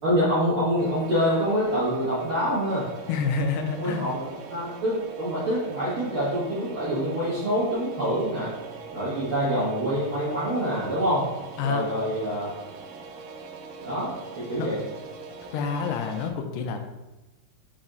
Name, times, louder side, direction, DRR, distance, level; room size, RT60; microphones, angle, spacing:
voice 1, 0.0-2.9 3.7-8.5 8.9-11.3 11.6-12.5 13.8-14.8, equal, 50° right, -10 dB, 1.6 m, -26 dB
sound 1, 0.8-16.3, right 4 dB, 90° right, 2.8 m, -42 dB
voice 2, 3.1-4.0 11.6-11.9 14.6-14.7 15.5-16.9, left 5 dB, 85° left, 5 dB, 2.7 m, -28 dB
6.4 x 4.3 x 3.8 m, 1.0 s
omnidirectional pair, 4.8 m